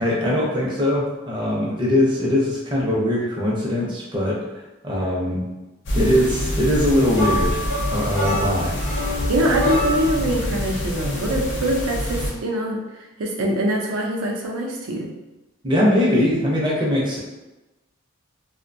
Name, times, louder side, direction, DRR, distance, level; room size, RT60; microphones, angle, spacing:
voice 1, 0.0-4.4 4.8-5.4 5.9-8.8 15.6-17.2, left 1 dB, 20° right, -5 dB, 0.5 m, -21 dB
sound 1, 5.9-12.3, equal, 55° left, 0.5 m, -26 dB
sound 2, 7.1-10.3, left 1 dB, 45° right, 0.8 m, -26 dB
voice 2, 9.3-12.8 13.2-15.1, right 1 dB, 80° right, -1 dB, 0.5 m, -23 dB
2.5 x 2.1 x 2.5 m, 1.1 s
head